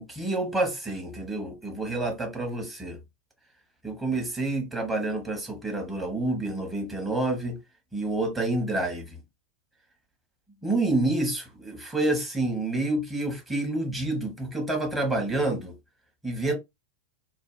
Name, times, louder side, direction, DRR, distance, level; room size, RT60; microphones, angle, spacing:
voice 1, 0.0-3.0 3.8-7.6 7.9-9.2 10.6-15.7 16.2-16.6, right 2 dB, 10° right, 0.9 m, -28 dB
2.5 x 2.0 x 3.0 m
figure-of-eight pair, 90°, 0 cm